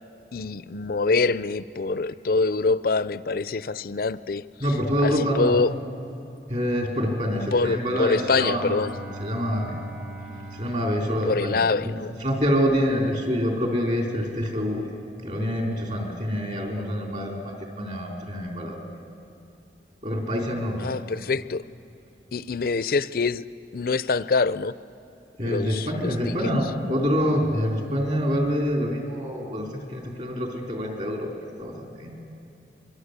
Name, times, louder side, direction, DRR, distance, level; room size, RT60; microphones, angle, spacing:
voice 1, 0.3-4.5 5.0-5.7 7.5-8.9 11.2-12.1 20.8-21.6 22.3-23.4 23.7-24.8 25.4-26.5, left 4 dB, 55° left, 16 dB, 0.5 m, -25 dB
voice 2, 4.6-5.5 6.5-8.8 9.2-9.8 10.5-11.9 12.2-14.9 15.2-18.8 20.0-20.9 25.4-31.3 31.6-32.1, equal, 40° right, 0 dB, 4.0 m, -26 dB
Bowed string instrument, 7.2-12.1, right 2 dB, 60° right, 6.5 m, -42 dB
25.0 x 23.0 x 8.2 m, 2.7 s
head